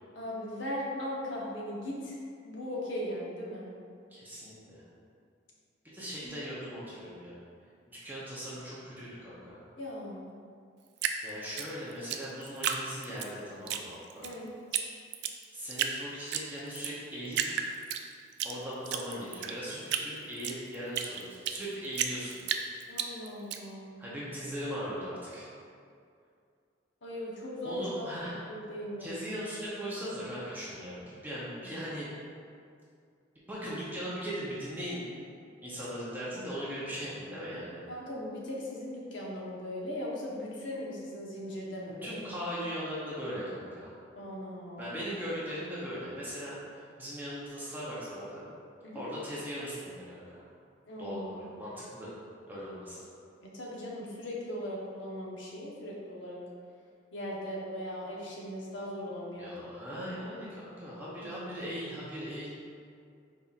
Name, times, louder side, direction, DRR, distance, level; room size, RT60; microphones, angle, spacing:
voice 1, 0.1-2.2 2.4-3.7 9.8-10.3 14.2-14.6 22.9-24.0 27.0-29.1 37.9-42.2 44.2-45.0 48.8-49.1 50.9-51.5 53.4-56.4 57.1-59.6 59.9-60.1 60.9-61.3, left 1 dB, 80° left, -4 dB, 0.9 m, -39 dB
voice 2, 4.1-4.8 5.9-7.3 7.9-9.6 11.2-14.3 15.5-17.6 18.4-22.6 24.0-25.5 27.6-28.5 29.0-32.1 33.5-35.0 35.6-37.8 42.0-43.9 44.8-46.6 47.0-48.4 48.9-50.4 51.0-52.1 52.5-53.1 59.4-62.5, equal, 10° right, -8 dB, 0.8 m, -39 dB
Drip, 11.0-13.3 13.7-14.3 14.7-14.8 15.1-16.0 16.3-16.9 17.3-18.5 18.9-21.6 22.0-23.6, right 8 dB, 65° right, 0.3 m, -32 dB
5.4 x 4.1 x 2.4 m, 2.3 s
head